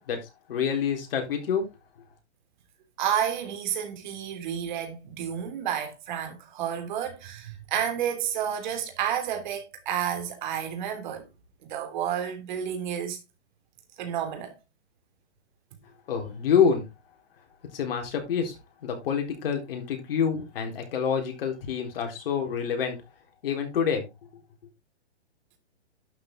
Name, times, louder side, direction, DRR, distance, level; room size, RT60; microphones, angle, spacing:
voice 1, 0.5-1.6 16.1-16.8 17.7-23.0 23.4-24.1, left 7 dB, 55° left, 3.9 m, -27 dB
voice 2, 3.0-11.3 11.7-13.2 14.0-14.5, right 9 dB, 40° right, 3.2 m, -30 dB
12.0 x 5.8 x 3.8 m
hypercardioid pair, 160°, 35 cm